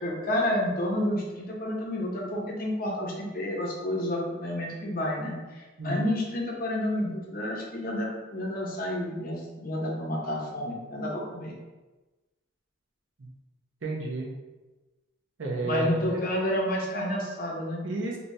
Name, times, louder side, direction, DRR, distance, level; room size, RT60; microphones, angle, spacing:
voice 1, 0.0-11.5 15.6-17.8, left 1 dB, 45° left, -2 dB, 0.7 m, -30 dB
voice 2, 13.8-14.3 15.4-16.2 17.8-18.2, right 2 dB, 65° right, -2 dB, 0.7 m, -31 dB
3.3 x 2.7 x 2.7 m, 1.2 s
head